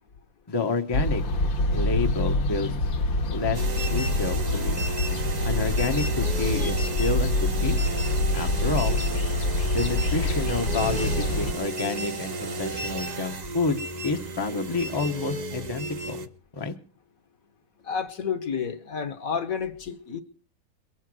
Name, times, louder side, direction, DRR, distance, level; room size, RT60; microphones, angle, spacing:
voice 1, 0.5-1.2 1.7-2.7 3.3-3.6 3.9-4.8 5.4-7.8 8.3-9.0 9.7-16.3 16.5-16.7, left 3 dB, 25° left, 5 dB, 0.5 m, -29 dB
sound 1, 0.9-11.5, left 1 dB, 85° left, 2.0 m, -26 dB
sound 2, 3.5-16.3, right 2 dB, 55° right, 0.4 m, -33 dB
voice 2, 17.8-20.2, left 6 dB, 55° left, 9 dB, 1.2 m, -30 dB
22.5 x 7.9 x 6.2 m, 0.41 s
omnidirectional pair, 2.0 m